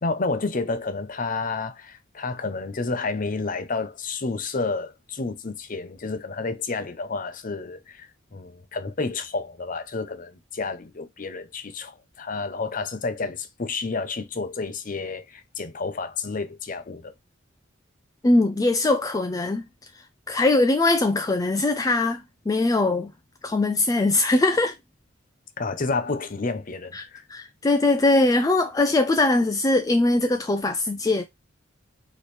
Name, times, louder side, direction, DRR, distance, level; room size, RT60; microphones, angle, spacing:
voice 1, 0.0-17.1 25.6-27.3, left 3 dB, 40° left, 0.7 m, -30 dB
voice 2, 18.2-19.6 20.3-23.1 23.4-24.7 26.9-27.0 27.3-31.2, left 2 dB, 15° left, 0.3 m, -21 dB
4.2 x 3.1 x 3.2 m
head